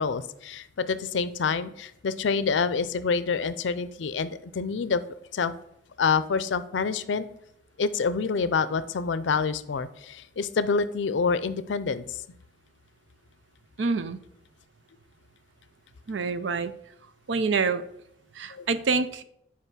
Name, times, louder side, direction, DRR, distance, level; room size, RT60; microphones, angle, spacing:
voice 1, 0.0-5.0 5.3-5.5 6.0-7.3 7.8-12.2 18.5-18.7, left 5 dB, 75° left, 15 dB, 0.4 m, -27 dB
voice 2, 13.8-14.2 16.1-16.7 17.3-17.8 18.4-19.2, right 4 dB, 75° right, 12 dB, 0.5 m, -26 dB
5.6 x 4.9 x 6.1 m, 0.76 s
head